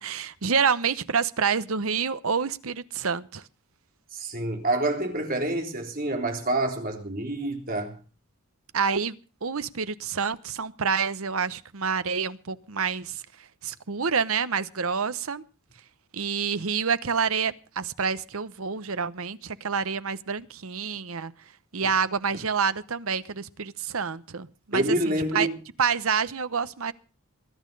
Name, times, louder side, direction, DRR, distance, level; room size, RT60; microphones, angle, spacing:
voice 1, 0.0-3.4 8.7-13.2 13.6-15.4 16.1-21.3 21.7-25.5 25.8-26.9, right 6 dB, 70° right, 0.9 m, -28 dB
voice 2, 4.1-8.0 24.7-25.6, right 1 dB, 40° right, 3.6 m, -27 dB
21.0 x 10.5 x 5.4 m
head